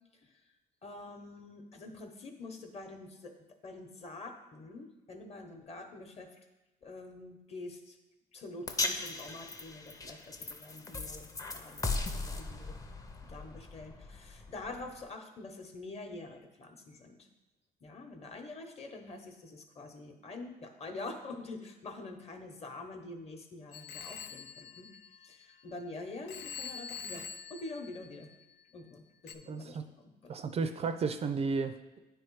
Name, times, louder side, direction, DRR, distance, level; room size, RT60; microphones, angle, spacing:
voice 1, 0.8-3.3 3.6-6.3 6.8-8.0 8.3-12.8 13.2-17.3 17.8-24.9 25.2-28.3 28.7-30.4, left 2 dB, 40° left, 5 dB, 1.0 m, -46 dB
sound 1, 8.7-15.0, left 3 dB, 20° left, 0.6 m, -38 dB
Telephone, 23.7-25.8 26.3-28.6 29.3-29.4, left 6 dB, 85° left, 0.5 m, -45 dB
voice 2, 29.5-29.8 30.3-32.0, right 4 dB, 35° right, 10 dB, 0.4 m, -33 dB
9.2 x 3.2 x 4.7 m, 1.0 s
cardioid pair, 110°, 17 cm